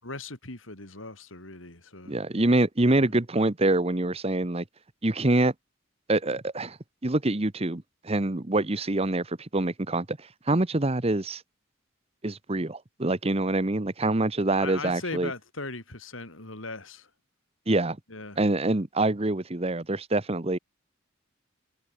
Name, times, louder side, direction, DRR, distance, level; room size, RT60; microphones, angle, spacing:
voice 1, 0.0-2.2 3.0-3.1 14.6-17.1 18.1-18.4, left 3 dB, 80° left, 5.6 m, -39 dB
voice 2, 2.1-4.6 5.0-5.5 6.1-6.8 7.0-10.2 10.5-11.4 12.2-15.3 17.7-18.0 18.4-20.6, right 2 dB, 30° right, 1.1 m, -25 dB
head